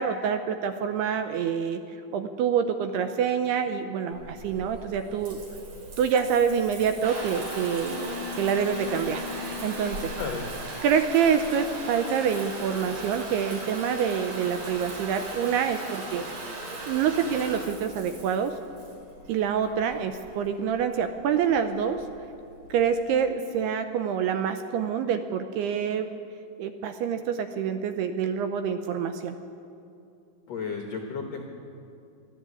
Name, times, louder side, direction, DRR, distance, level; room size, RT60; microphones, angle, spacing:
voice 1, 0.0-5.4 6.0-10.1 10.8-16.3 16.8-18.6 19.3-22.0 22.7-26.1 26.6-29.4, right 7 dB, 80° right, 8 dB, 2.5 m, -26 dB
Water tap faucet / Bathtub (filling or washing) / Trickle dribble, 4.1-23.0, right 1 dB, 45° right, 5.0 m, -38 dB
voice 2, 30.5-31.4, left 5 dB, 85° left, 3 dB, 1.4 m, -33 dB
23.0 x 13.5 x 8.4 m, 2.6 s
omnidirectional pair, 5.2 m